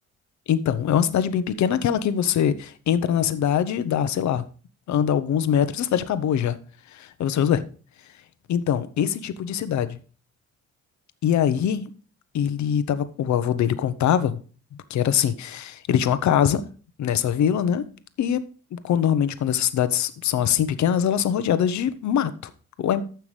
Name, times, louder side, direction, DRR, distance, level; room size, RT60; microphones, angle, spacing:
voice 1, 0.5-4.4 4.9-6.6 7.2-7.6 8.5-10.0 11.2-11.9 12.3-14.4 14.9-16.6 17.0-17.8 18.2-18.4 18.7-22.3 22.8-23.0, left 9 dB, 70° left, 12 dB, 0.9 m, -23 dB
14.5 x 5.9 x 3.3 m, 0.38 s
cardioid pair, 90°, 30 cm